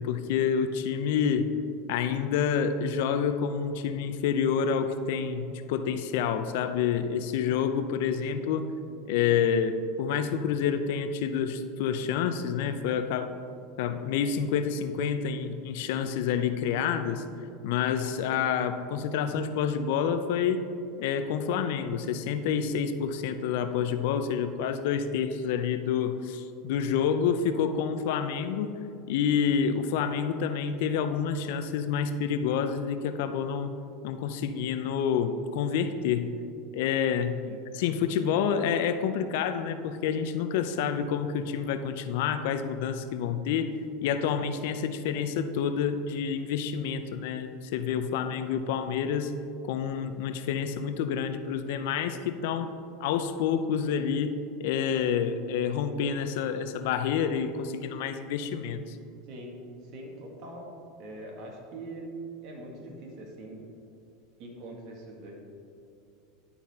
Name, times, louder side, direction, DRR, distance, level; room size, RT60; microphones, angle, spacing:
voice 1, 0.0-1.5 1.9-8.7 9.1-13.3 13.8-17.2 17.6-20.6 21.0-28.8 29.1-33.7 34.0-36.3 36.7-37.4 37.7-43.7 44.0-49.3 49.6-59.0, left 7 dB, 70° left, 9 dB, 0.5 m, -28 dB
voice 2, 59.9-60.7 61.0-62.1 62.4-63.6 64.4-65.3, right 1 dB, 55° right, 0 dB, 1.8 m, -43 dB
11.5 x 4.2 x 4.2 m, 2.5 s
supercardioid pair, 115°, 0 cm